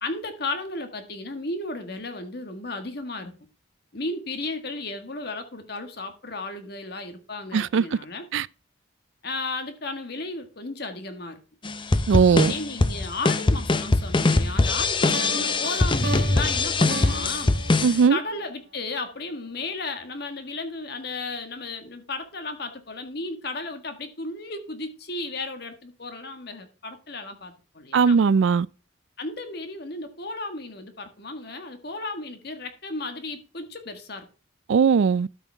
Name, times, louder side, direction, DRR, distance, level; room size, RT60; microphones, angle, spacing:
voice 1, 0.0-3.3 3.9-8.3 9.2-11.4 12.3-17.6 18.1-28.2 29.2-34.3, left 3 dB, 55° left, 1.6 m, -34 dB
voice 2, 7.5-7.8 8.3-8.5 12.1-12.5 17.8-18.2 27.9-28.7 34.7-35.3, right 6 dB, 70° right, 0.4 m, -19 dB
sound 1, 11.6-18.0, left 2 dB, 25° left, 0.6 m, -22 dB
sound 2, 15.1-19.1, right 3 dB, 50° right, 0.9 m, -36 dB
13.0 x 5.5 x 3.4 m
head